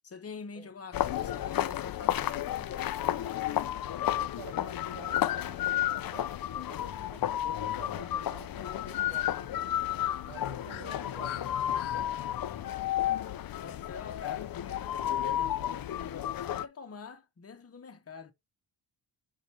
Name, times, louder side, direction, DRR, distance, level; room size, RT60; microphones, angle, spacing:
voice 1, 0.0-2.9 13.5-18.3, left 5 dB, 30° left, 1.1 m, -45 dB
sound 1, 0.9-16.7, left 12 dB, 50° left, 0.5 m, -32 dB
voice 2, 4.1-9.6 10.3-12.0, right 8 dB, 80° right, 1.2 m, -51 dB
Bird, 8.8-14.0, left 12 dB, 85° left, 0.9 m, -47 dB
5.8 x 4.9 x 4.2 m
wide cardioid pair, 145°, 47 cm